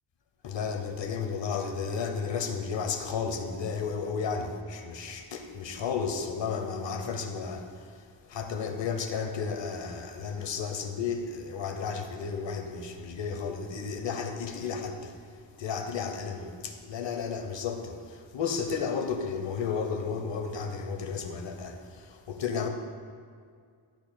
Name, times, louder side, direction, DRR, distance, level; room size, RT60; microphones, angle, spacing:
voice 1, 0.4-15.2 15.6-22.7, left 5 dB, 60° left, 0.9 m, -33 dB
12.0 x 8.7 x 2.2 m
wide cardioid pair, 140°, 49 cm